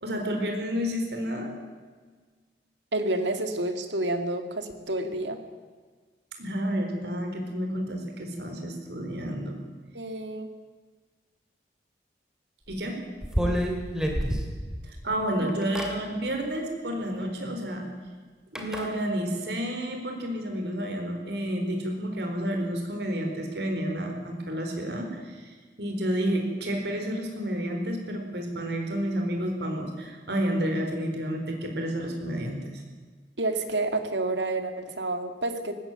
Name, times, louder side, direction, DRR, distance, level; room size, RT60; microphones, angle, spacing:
voice 1, 0.0-1.5 6.4-9.6 12.7-13.0 14.8-17.9 18.5-32.8, equal, 70° right, 3 dB, 4.3 m, -30 dB
voice 2, 2.9-5.4 9.9-10.5 13.4-13.6 15.4-15.5 33.4-35.7, right 2 dB, 90° right, 7 dB, 2.3 m, -29 dB
sound 1, 12.7-12.8 13.2-15.0 15.5-15.9 17.2-17.3 18.6-18.9, equal, 5° right, 2.7 m, -28 dB
19.0 x 15.5 x 9.1 m, 1.5 s
head